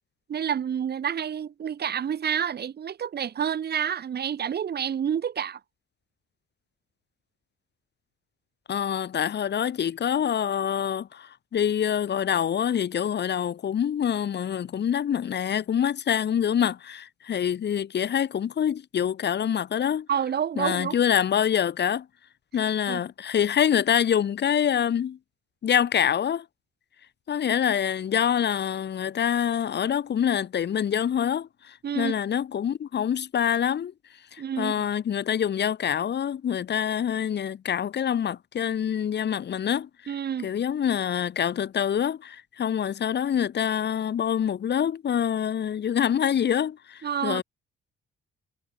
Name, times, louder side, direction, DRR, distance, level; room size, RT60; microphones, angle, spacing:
voice 1, 0.3-5.6 20.1-21.0 22.9-23.0 31.8-32.1 34.4-34.9 40.1-40.5 47.0-47.4, right 8 dB, 55° right, 3.0 m, -29 dB
voice 2, 8.7-20.1 20.6-22.1 22.5-25.2 25.6-26.5 27.3-33.9 34.3-40.1 40.4-47.4, left 9 dB, 60° left, 7.0 m, -26 dB
cardioid pair, 90°, 20 cm